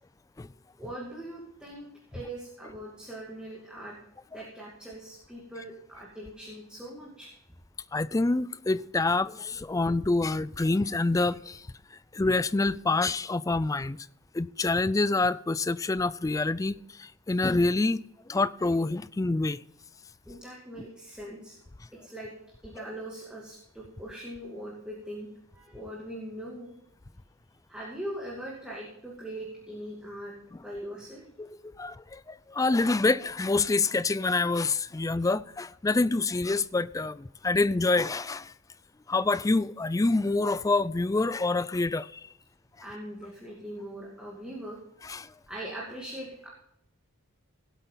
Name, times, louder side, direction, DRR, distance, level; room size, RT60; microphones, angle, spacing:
voice 1, 0.8-4.0 4.3-7.3 20.3-21.6 22.0-22.3 22.6-25.3 25.5-26.7 27.7-30.3 30.6-31.2 42.8-44.8 45.5-46.5, right 1 dB, 5° right, 2.3 m, -41 dB
voice 2, 7.9-14.1 14.3-19.6 30.5-30.6 31.4-38.5 39.1-42.3 45.0-45.3, left 3 dB, 15° left, 0.3 m, -27 dB
17.0 x 8.3 x 3.9 m
head